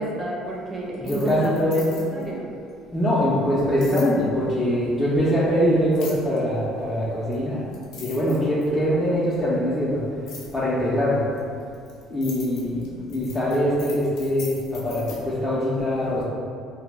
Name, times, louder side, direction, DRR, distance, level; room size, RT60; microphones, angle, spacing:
voice 1, 0.0-2.5, right 2 dB, 30° right, -3 dB, 0.6 m, -31 dB
sound 1, 0.9-2.3 3.8-4.1 5.9-6.4 7.3-7.4 7.7-8.8 10.3-10.5 11.4-15.2, left 3 dB, 70° left, 0.5 m, -41 dB
voice 2, 1.0-1.9 2.9-7.7 8.0-10.0 10.5-11.2 12.1-16.2, equal, 15° left, -9 dB, 0.5 m, -23 dB
2.1 x 2.0 x 3.2 m, 2.4 s
supercardioid pair, 80°, 0 cm